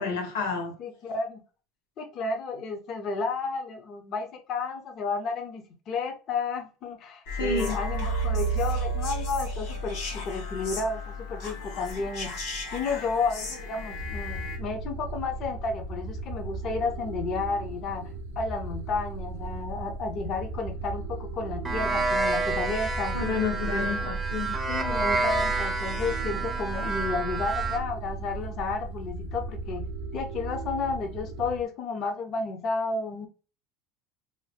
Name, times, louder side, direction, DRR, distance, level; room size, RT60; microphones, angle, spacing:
voice 1, 0.0-0.7 7.3-7.8 23.1-24.6, left 4 dB, 85° left, 0.9 m, -30 dB
voice 2, 0.8-1.4 2.0-12.3 12.7-23.2 23.7-24.1 24.7-29.8 30.1-33.3, left 4 dB, 40° left, 0.5 m, -32 dB
sound 1, 7.3-14.6, right 1 dB, 60° left, 1.2 m, -32 dB
sound 2, 13.9-31.6, right 3 dB, 80° right, 0.4 m, -37 dB
sound 3, 21.6-27.8, right 3 dB, 10° right, 0.5 m, -29 dB
2.7 x 2.0 x 3.2 m
supercardioid pair, 135°, 0 cm